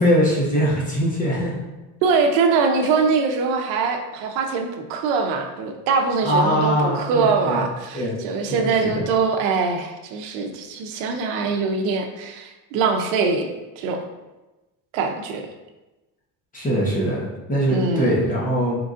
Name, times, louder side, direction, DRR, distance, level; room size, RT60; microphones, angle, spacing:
voice 1, 0.0-1.5 6.2-7.6 7.9-8.2 8.5-9.0 16.5-18.8, equal, 20° left, -5 dB, 1.0 m, -22 dB
voice 2, 2.0-13.5 13.8-14.0 14.9-15.5 17.7-18.1, right 4 dB, 80° right, 4 dB, 0.7 m, -23 dB
4.5 x 3.8 x 2.5 m, 1.1 s
cardioid pair, 155°, 38 cm